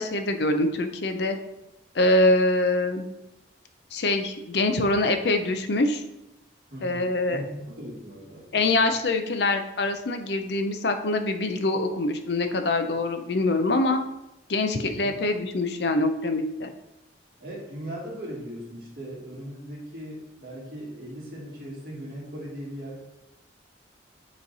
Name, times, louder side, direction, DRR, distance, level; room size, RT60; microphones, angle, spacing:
voice 1, 0.0-1.4 1.9-3.1 3.9-6.0 6.8-7.4 8.5-14.0 14.5-16.7, left 2 dB, 65° left, 7 dB, 0.6 m, -24 dB
voice 2, 6.7-8.7 15.0-15.2 17.4-23.0, equal, 55° right, -4 dB, 2.0 m, -39 dB
8.1 x 3.2 x 4.0 m, 0.91 s
head